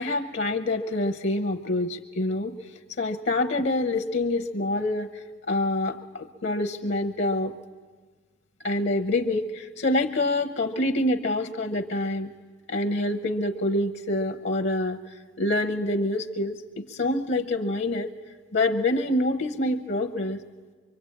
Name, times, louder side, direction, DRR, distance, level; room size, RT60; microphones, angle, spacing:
voice 1, 0.0-2.6 3.0-5.1 5.5-7.5 8.6-12.3 12.7-15.0 15.4-18.1 18.5-20.4, left 2 dB, 65° left, 8 dB, 0.9 m, -26 dB
24.5 x 24.0 x 8.7 m, 1.4 s
head